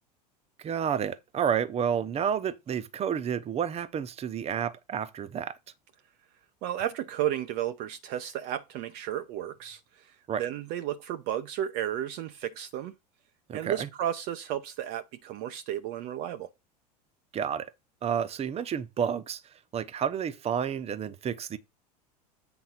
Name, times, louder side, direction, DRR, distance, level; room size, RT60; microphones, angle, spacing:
voice 1, 0.6-5.6 10.3-10.4 13.5-13.9 17.3-17.7 18.0-19.4 19.7-21.6, right 8 dB, 30° right, 1.0 m, -30 dB
voice 2, 6.6-12.9 13.5-16.5, right 11 dB, 50° right, 0.7 m, -33 dB
8.0 x 3.9 x 5.8 m
hypercardioid pair, 90°, 21 cm